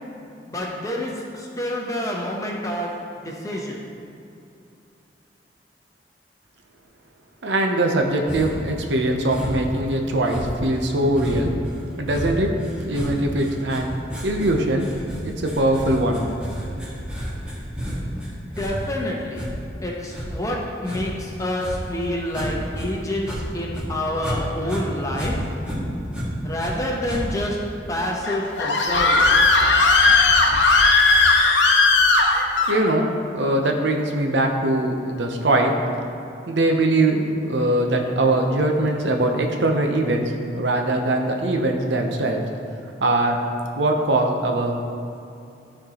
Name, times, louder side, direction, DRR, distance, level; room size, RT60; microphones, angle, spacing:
voice 1, 0.5-3.8 18.4-19.4 19.8-25.4 26.4-27.6 27.9-29.5, left 1 dB, 20° left, -2 dB, 0.9 m, -28 dB
voice 2, 7.4-11.5 12.0-13.9 14.2-14.9 15.2-16.3 32.7-33.1 33.3-35.7 36.5-42.4 43.0-43.4 43.8-44.7, right 1 dB, 80° right, 3 dB, 0.7 m, -21 dB
sound 1, 8.3-8.7 9.3-9.8 10.2-22.9 23.2-24.4 24.6-26.7 27.0-27.5, equal, 5° right, 1.5 m, -31 dB
Screaming, 28.2-32.8, left 3 dB, 85° left, 0.8 m, -16 dB
12.5 x 4.3 x 2.9 m, 2.6 s
head